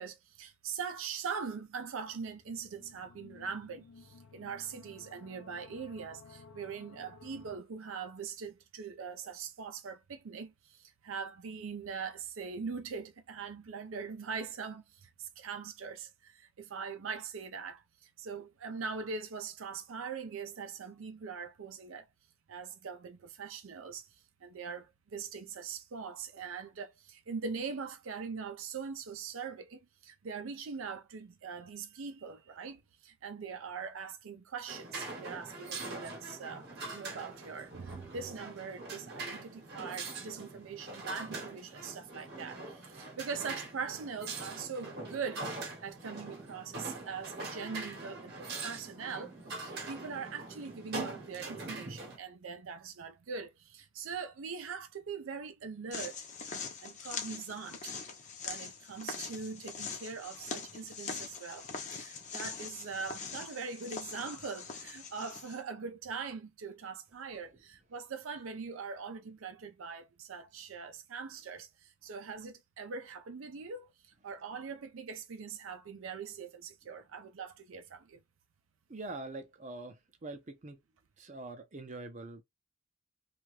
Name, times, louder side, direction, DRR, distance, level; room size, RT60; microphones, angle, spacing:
voice 1, 0.0-22.1 22.5-36.7 36.9-49.3 49.6-56.2 56.8-58.0 58.4-78.2, right 5 dB, 80° right, 0.5 m, -42 dB
sound 1, 2.1-7.6, left 4 dB, 85° left, 0.5 m, -56 dB
sound 2, 34.7-52.2, right 3 dB, 50° right, 1.0 m, -43 dB
sound 3, 55.9-65.6, left 5 dB, 35° left, 0.7 m, -42 dB
voice 2, 78.9-80.8 81.2-82.4, right 2 dB, 35° right, 0.6 m, -44 dB
2.8 x 2.4 x 3.0 m
head